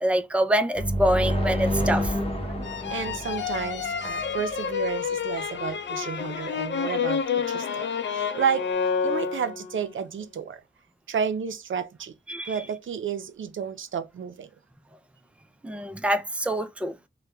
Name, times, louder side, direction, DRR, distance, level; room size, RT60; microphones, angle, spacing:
voice 1, 0.0-2.5 12.3-12.6 15.6-16.9, right 1 dB, 5° right, 0.4 m, -26 dB
sound 1, 0.8-4.5, equal, 30° left, 1.0 m, -28 dB
sound 2, 2.6-9.8, left 6 dB, 70° left, 0.5 m, -29 dB
voice 2, 2.9-7.8 8.1-8.7 9.0-10.6 11.1-12.1 12.5-14.5, right 7 dB, 85° right, 0.5 m, -31 dB
3.3 x 2.1 x 3.0 m
wide cardioid pair, 60°, 20 cm